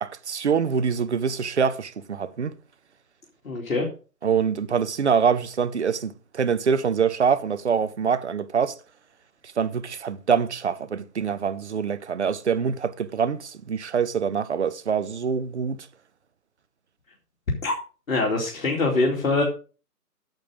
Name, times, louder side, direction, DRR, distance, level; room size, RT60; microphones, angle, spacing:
voice 1, 0.0-2.5 4.2-8.8 9.6-15.8, right 6 dB, 45° right, 0.7 m, -25 dB
voice 2, 3.4-3.9 17.6-17.7 18.1-19.4, left 3 dB, 55° left, 2.7 m, -23 dB
9.0 x 7.4 x 5.2 m
figure-of-eight pair, 155°, 48 cm